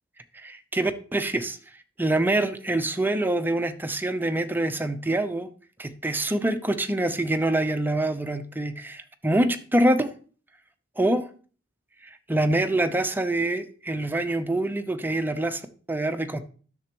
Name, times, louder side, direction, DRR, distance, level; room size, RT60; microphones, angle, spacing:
voice 1, 0.3-1.6 2.0-5.5 5.8-10.1 11.0-11.3 12.3-15.6 15.9-16.4, right 1 dB, 10° right, 0.5 m, -25 dB
10.5 x 6.8 x 3.0 m
head